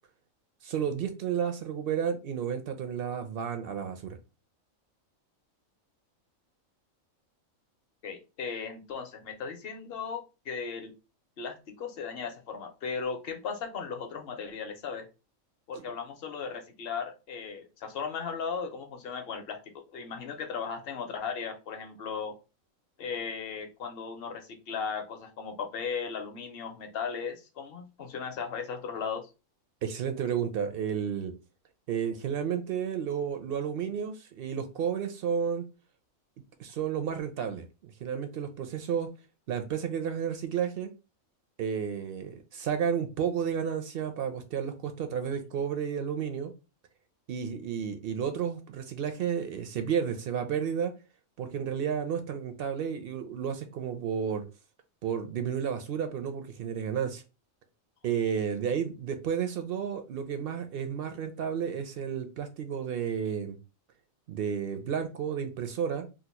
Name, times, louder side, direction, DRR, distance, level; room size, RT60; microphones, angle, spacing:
voice 1, 0.6-4.2 15.8-15.9 29.8-31.3 31.9-35.6 36.6-39.1 39.5-40.9 41.6-46.5 47.3-50.9 51.4-54.4 55.0-57.2 58.0-63.6 64.3-66.1, right 7 dB, 65° right, 7 dB, 0.5 m, -32 dB
voice 2, 8.0-10.9 11.4-15.1 15.7-22.4 23.0-29.3, left 6 dB, 55° left, 6 dB, 0.8 m, -37 dB
2.8 x 2.2 x 4.1 m, 0.29 s
omnidirectional pair, 1.4 m